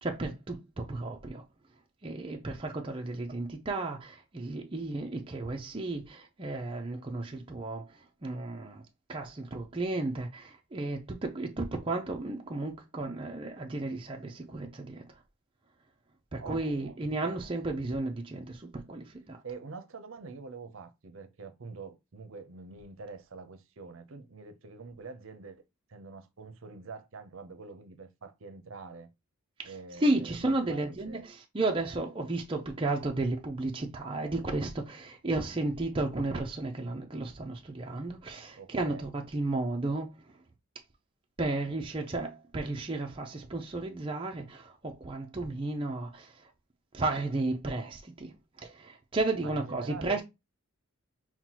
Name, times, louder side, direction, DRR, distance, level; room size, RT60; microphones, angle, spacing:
voice 1, 0.0-1.4 2.0-8.8 9.1-15.0 16.3-19.4 29.6-29.7 30.0-40.2 41.4-46.5 46.9-50.2, right 2 dB, 25° right, 0.5 m, -33 dB
voice 2, 16.4-17.5 19.4-25.6 25.9-29.1 29.6-31.2 38.6-39.0 49.4-50.2, right 4 dB, 65° right, 0.6 m, -45 dB
5.7 x 2.2 x 2.9 m
head